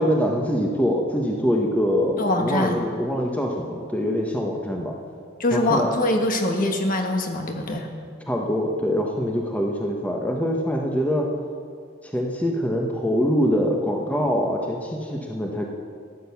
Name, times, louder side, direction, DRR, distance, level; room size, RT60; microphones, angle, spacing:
voice 1, 0.0-4.9 5.5-5.9 8.3-11.3 12.0-15.6, equal, 10° left, 0 dB, 1.2 m, -24 dB
voice 2, 2.2-2.8 5.4-7.9, left 1 dB, 45° left, 3 dB, 1.5 m, -23 dB
14.5 x 10.0 x 7.1 m, 2.2 s
head